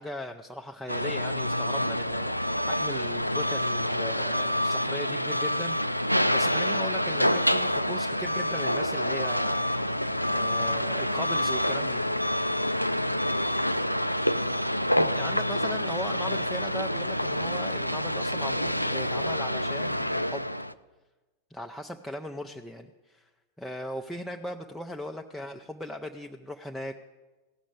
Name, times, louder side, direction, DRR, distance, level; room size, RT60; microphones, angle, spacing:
voice 1, 0.0-10.0 10.3-12.0 14.9-20.5 21.5-23.3 23.6-26.9, left 1 dB, 5° left, 2 dB, 0.6 m, -38 dB
sound 1, 0.9-20.7, equal, 90° left, 0.3 m, -27 dB
15.5 x 6.2 x 8.1 m, 1.2 s
figure-of-eight pair, 90°, 0 cm